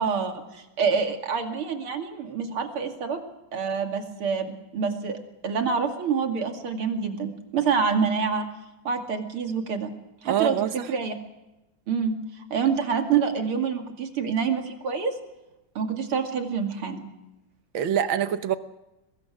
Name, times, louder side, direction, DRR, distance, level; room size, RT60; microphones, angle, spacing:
voice 1, 0.0-3.2 3.5-5.2 5.4-8.5 8.8-9.9 10.2-10.6 10.9-11.1 11.9-12.2 12.5-15.1 15.7-17.1, right 6 dB, 85° right, 4 dB, 3.2 m, -26 dB
voice 2, 10.3-10.9 17.7-18.6, right 9 dB, 70° right, 11 dB, 1.8 m, -25 dB
23.0 x 21.0 x 6.2 m, 0.98 s
omnidirectional pair, 2.3 m